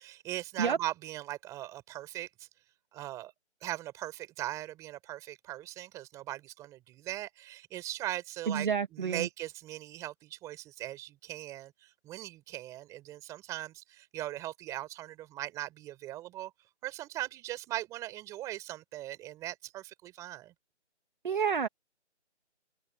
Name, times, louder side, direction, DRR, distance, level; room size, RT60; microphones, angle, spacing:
voice 1, 0.0-2.5 2.9-3.3 3.6-16.5 16.8-20.5, right 15 dB, 10° right, 4.7 m, -40 dB
voice 2, 8.5-9.3 21.2-21.7, right 6 dB, 45° right, 2.3 m, -29 dB
open air
figure-of-eight pair, 165°, 34 cm